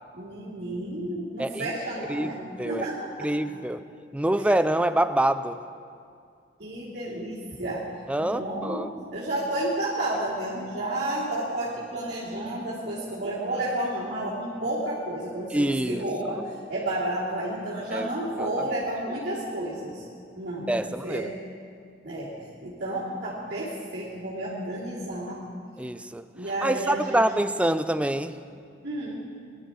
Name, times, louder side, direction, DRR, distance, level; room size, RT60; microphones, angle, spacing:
voice 1, 0.1-3.3 4.4-4.5 6.6-7.8 8.2-16.4 16.7-20.0 20.4-21.3 22.0-22.3 22.6-25.4 26.3-27.2 28.8-29.3, right 1 dB, 65° right, -8 dB, 2.8 m, -31 dB
voice 2, 1.4-1.7 2.1-2.9 3.2-3.8 4.1-5.6 8.1-8.9 15.5-16.0 16.4-16.5 17.9-18.1 18.4-18.5 20.7-21.3 25.8-26.2 26.6-28.3, right 1 dB, 5° right, 11 dB, 0.4 m, -26 dB
21.0 x 11.5 x 4.7 m, 2.3 s
head